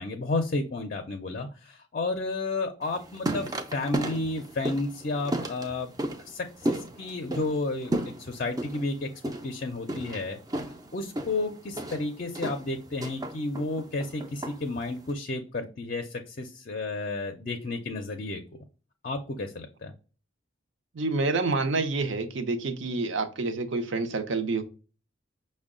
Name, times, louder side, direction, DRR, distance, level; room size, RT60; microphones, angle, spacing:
voice 1, 0.0-5.9 6.3-9.1 9.4-10.4 10.9-18.4 19.0-19.9, left 2 dB, 45° left, 0.5 m, -32 dB
sound 1, 2.8-15.1, right 1 dB, 20° right, 0.4 m, -35 dB
voice 2, 20.9-24.6, right 3 dB, 65° right, 0.6 m, -28 dB
6.0 x 2.1 x 3.6 m
head